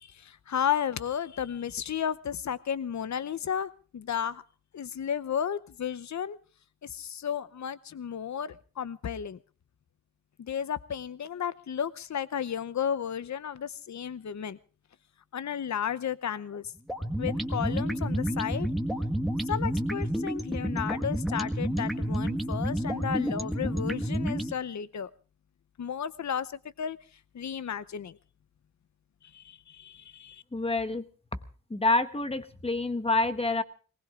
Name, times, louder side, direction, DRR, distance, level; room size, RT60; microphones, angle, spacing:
voice 1, 0.0-4.4 4.7-6.4 6.8-9.4 10.4-14.6 15.3-16.7 17.2-18.7 19.5-25.1 25.8-26.5 26.8-27.0 27.3-28.2 29.3-30.4, left 8 dB, 55° left, 16 dB, 0.8 m, -33 dB
sound 1, 16.9-24.5, equal, ahead, 1.6 m, -30 dB
voice 2, 30.5-31.0 31.7-33.6, left 2 dB, 15° left, 11 dB, 1.2 m, -27 dB
19.5 x 19.5 x 3.7 m, 0.39 s
wide cardioid pair, 125°, 34 cm